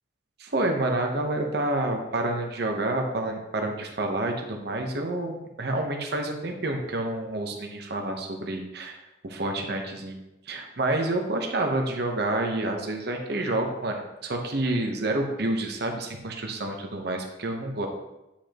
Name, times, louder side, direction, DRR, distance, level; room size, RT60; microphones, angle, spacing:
voice 1, 0.4-10.2 10.5-17.9, right 2 dB, 55° right, 3 dB, 0.9 m, -28 dB
8.6 x 5.2 x 3.0 m, 0.95 s
head